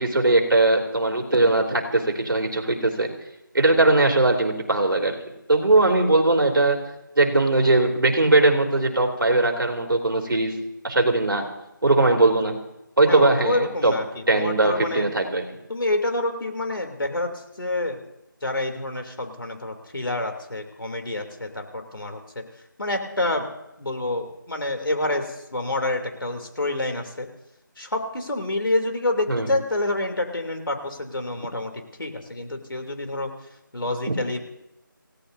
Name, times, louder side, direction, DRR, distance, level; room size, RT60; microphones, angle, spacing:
voice 1, 0.0-3.1 3.5-5.1 5.5-6.8 7.2-10.5 10.8-11.4 11.8-12.6 13.0-13.9 14.3-15.4 29.3-29.5 34.1-34.2, right 2 dB, 75° right, 2 dB, 3.3 m, -20 dB
voice 2, 13.1-15.1 15.7-17.3 17.6-18.0 18.4-22.4 22.8-23.5 23.8-27.3 27.8-31.7 32.0-33.3 33.7-34.4, left 2 dB, 75° left, 5 dB, 3.1 m, -27 dB
28.0 x 17.0 x 2.7 m, 0.89 s
figure-of-eight pair, 175°, 11 cm